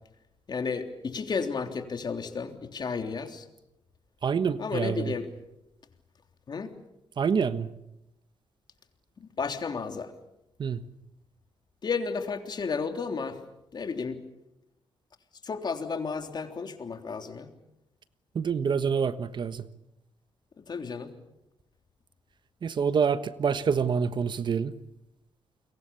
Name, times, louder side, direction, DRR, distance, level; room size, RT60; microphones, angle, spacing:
voice 1, 0.5-3.4 4.6-5.3 6.5-6.7 9.4-10.1 11.8-13.4 13.7-14.2 15.4-17.5 20.7-21.1, left 5 dB, 45° left, 3.5 m, -32 dB
voice 2, 4.2-5.1 7.2-7.7 10.6-10.8 18.3-19.6 22.6-24.7, right 6 dB, 50° right, 1.3 m, -27 dB
29.5 x 23.5 x 7.1 m
cardioid pair, 85°, 10 cm